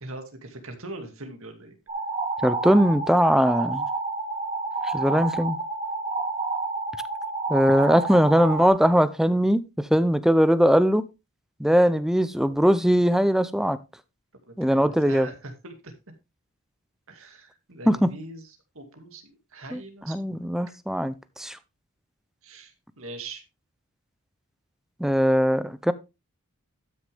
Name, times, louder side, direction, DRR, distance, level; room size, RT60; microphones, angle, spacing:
voice 1, 0.0-1.8 14.5-15.9 17.1-18.5 18.7-20.2 22.4-23.4, right 2 dB, 65° right, 2.2 m, -41 dB
sound 1, 1.9-8.7, right 3 dB, 25° right, 1.5 m, -29 dB
voice 2, 2.4-3.8 4.8-5.6 7.5-11.1 11.6-13.8 14.6-15.3 17.9-18.1 19.7-19.8 20.1-21.6 25.0-25.9, equal, ahead, 0.4 m, -20 dB
12.5 x 6.4 x 3.4 m
head